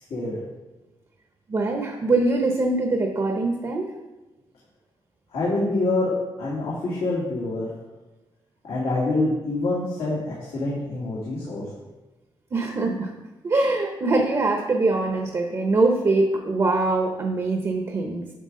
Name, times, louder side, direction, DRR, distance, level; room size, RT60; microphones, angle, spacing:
voice 1, 1.5-3.9 12.5-13.1 13.4-18.2, right 2 dB, 35° right, 3 dB, 0.8 m, -23 dB
voice 2, 5.3-6.1 6.4-7.7 8.6-11.6, left 2 dB, 85° left, -7 dB, 2.2 m, -26 dB
9.4 x 6.0 x 3.8 m, 1.1 s
wide cardioid pair, 135°, 9 cm